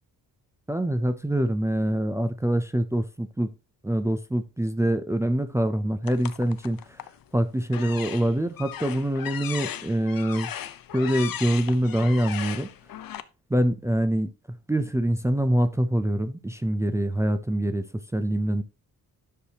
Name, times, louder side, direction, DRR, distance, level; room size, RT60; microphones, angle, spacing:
voice 1, 0.7-3.5 3.8-7.0 7.3-10.6 10.9-12.7 13.5-17.9 18.1-18.6, right 1 dB, 10° right, 0.5 m, -25 dB
sound 1, 6.0-7.2 7.7-13.2, left 11 dB, 65° left, 0.7 m, -37 dB
10.0 x 6.4 x 2.9 m
wide cardioid pair, 160°, 37 cm